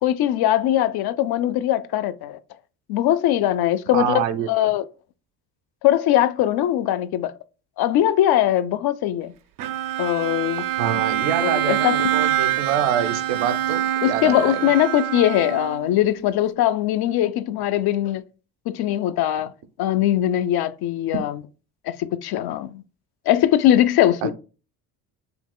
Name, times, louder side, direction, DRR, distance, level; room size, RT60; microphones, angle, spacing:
voice 1, 0.0-2.4 2.9-4.8 5.8-7.3 7.8-9.3 10.0-10.6 11.4-12.0 14.0-18.2 18.7-19.5 19.8-21.4 21.9-22.8 23.3-24.3, left 12 dB, 50° left, 0.6 m, -21 dB
voice 2, 3.9-4.5 10.8-14.6 24.2-24.3, right 9 dB, 65° right, 0.9 m, -25 dB
Bowed string instrument, 9.6-16.0, right 12 dB, 45° right, 0.5 m, -25 dB
5.8 x 3.6 x 2.2 m
hypercardioid pair, 65°, 48 cm